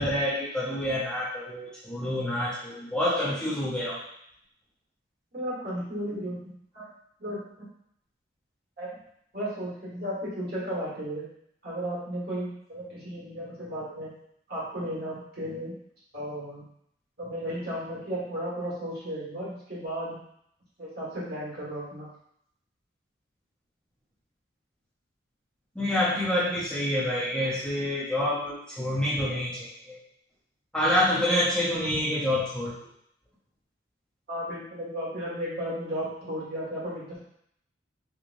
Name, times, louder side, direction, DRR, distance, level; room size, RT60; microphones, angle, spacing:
voice 1, 0.0-4.0 25.7-30.0 30.7-32.9, left 1 dB, 5° left, -9 dB, 0.7 m, -27 dB
voice 2, 5.3-6.9 7.2-7.7 8.8-8.9 9.3-11.3 11.6-14.1 14.5-15.7 16.1-16.6 17.2-20.2 20.8-22.1 34.3-37.2, equal, 55° right, -8 dB, 1.5 m, -34 dB
3.5 x 3.2 x 2.6 m, 0.72 s
head